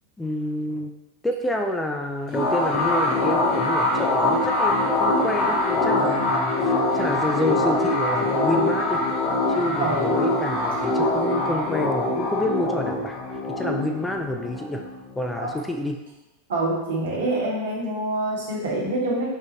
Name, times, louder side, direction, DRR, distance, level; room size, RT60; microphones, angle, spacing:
voice 1, 0.2-0.9 1.2-9.0 9.5-14.8 15.2-16.0, left 1 dB, 10° left, 4 dB, 0.3 m, -28 dB
sound 1, 2.3-15.5, left 2 dB, 40° left, 0.7 m, -23 dB
voice 2, 9.8-10.1 15.4-15.5 16.5-19.3, right 2 dB, 75° right, -3 dB, 1.0 m, -26 dB
3.5 x 2.5 x 2.8 m, 1.0 s
hypercardioid pair, 95°, 0 cm